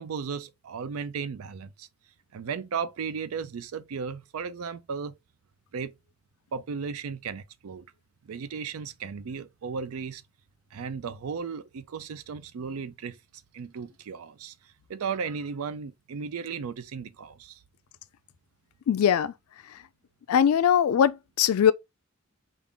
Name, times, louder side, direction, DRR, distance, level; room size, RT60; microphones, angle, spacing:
voice 1, 0.0-1.9 2.3-5.1 5.7-5.9 6.5-7.9 8.2-10.2 10.7-13.2 13.5-17.6, right 5 dB, 85° right, 0.4 m, -35 dB
voice 2, 18.9-19.3 19.7-19.8 20.3-21.7, left 8 dB, 85° left, 0.3 m, -21 dB
3.6 x 2.5 x 3.4 m
head